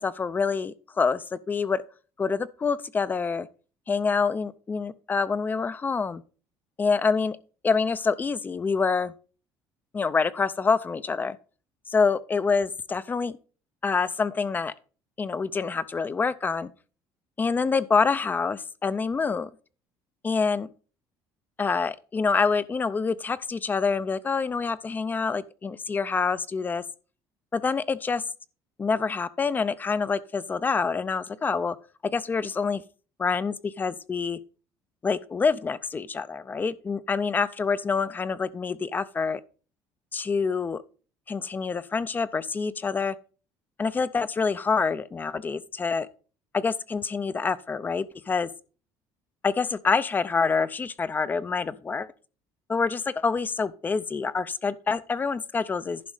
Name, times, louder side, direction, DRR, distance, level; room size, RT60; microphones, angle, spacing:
voice 1, 0.0-1.8 2.2-3.5 3.9-6.2 6.8-7.4 7.6-9.1 9.9-11.4 11.9-13.4 13.8-14.7 15.2-16.7 17.4-19.5 20.2-20.7 21.6-26.8 27.5-28.2 28.8-31.8 32.1-32.8 33.2-34.4 35.0-39.4 40.1-40.8 41.3-43.1 43.8-46.1 46.5-48.5 49.4-52.1 52.7-56.0, left 5 dB, 25° left, 0.5 m, -26 dB
11.0 x 5.2 x 4.9 m
cardioid pair, 120°, 8 cm